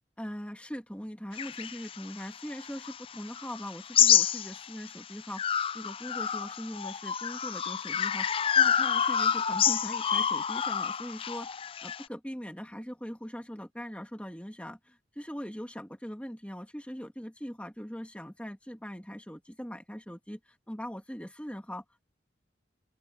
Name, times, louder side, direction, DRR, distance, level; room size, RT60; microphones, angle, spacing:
voice 1, 0.2-22.1, equal, 5° left, 2.4 m, -41 dB
sound 1, 1.4-4.9 5.3-12.0, left 8 dB, 30° left, 0.3 m, -28 dB
open air
head